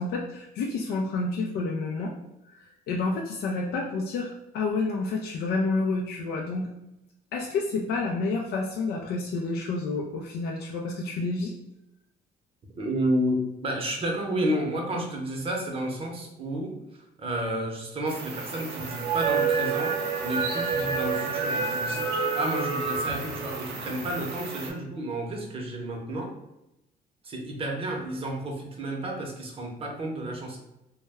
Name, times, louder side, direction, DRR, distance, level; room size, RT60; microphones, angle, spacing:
voice 1, 0.0-2.1 2.5-6.7 7.3-11.5, left 3 dB, 70° left, 0 dB, 0.4 m, -29 dB
voice 2, 12.8-16.7 17.2-26.3 27.2-30.6, right 1 dB, 35° right, 1 dB, 0.7 m, -31 dB
sound 1, 18.1-24.7, right 5 dB, 75° right, 0.6 m, -29 dB
2.1 x 2.1 x 3.3 m, 0.89 s
cardioid pair, 110°, 17 cm